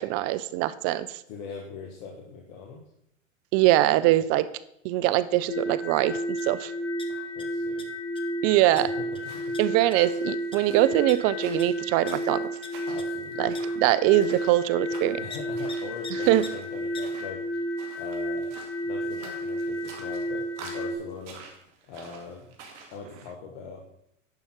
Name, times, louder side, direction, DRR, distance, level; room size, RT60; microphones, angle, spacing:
voice 1, 0.0-1.2 3.5-4.5 4.8-6.7 8.4-8.9 9.6-12.4 13.4-15.2 16.3-16.4, right 15 dB, 35° right, 15 dB, 0.5 m, -23 dB
voice 2, 1.3-2.8 7.1-7.9 8.8-9.6 12.9-13.5 15.2-17.4 17.9-18.5 18.8-21.4 21.9-22.5 22.9-23.8, left 5 dB, 55° left, 2 dB, 1.6 m, -41 dB
sound 1, 5.5-21.0, equal, 30° left, 1.7 m, -32 dB
sound 2, 6.4-6.5 6.8-7.4 7.8-8.2 8.8-8.9 9.1-9.2 9.5-9.6 9.9-10.1 10.5-10.6 11.1-11.2 11.6-11.7 12.1-12.2 12.6-12.7 13.0-13.1 13.5-13.6 14.1-14.2 15.3-15.4 15.7-15.8 16.0-16.1 16.4-16.5 16.9-17.0, left 4 dB, 15° left, 0.9 m, -41 dB
sound 3, 9.1-23.0, right 5 dB, 60° right, 2.3 m, -49 dB
10.5 x 5.6 x 4.5 m, 0.77 s
hypercardioid pair, 105°, 40 cm